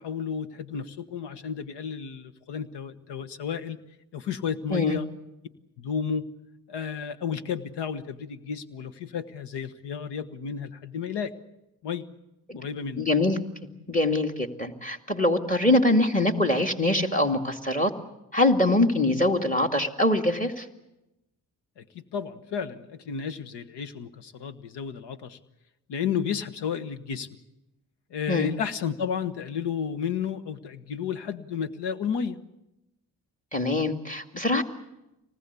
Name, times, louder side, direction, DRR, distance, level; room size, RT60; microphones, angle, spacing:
voice 1, 0.0-3.8 4.1-5.1 5.8-6.3 6.7-11.3 11.8-12.1 12.5-13.0 21.8-25.4 25.9-27.3 28.1-32.4, left 7 dB, 80° left, 11 dB, 1.4 m, -32 dB
voice 2, 13.0-13.4 13.9-17.9 18.3-20.7 28.3-28.5 33.5-34.6, left 2 dB, 20° left, 6 dB, 2.4 m, -23 dB
25.5 x 19.5 x 8.3 m, 0.94 s
supercardioid pair, 50°, 41 cm